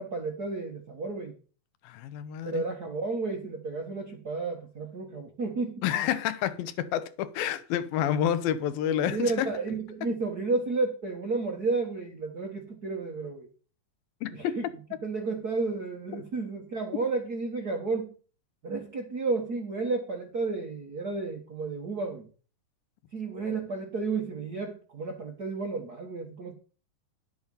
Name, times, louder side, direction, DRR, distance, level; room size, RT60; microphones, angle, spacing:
voice 1, 0.0-1.3 2.4-5.8 9.0-13.5 14.3-14.7 15.0-18.1 18.6-22.3 23.1-26.5, right 3 dB, 85° right, 0.8 m, -32 dB
voice 2, 1.8-2.7 5.8-9.5 14.2-14.6, left 10 dB, 85° left, 2.7 m, -29 dB
11.0 x 8.1 x 5.4 m
omnidirectional pair, 4.1 m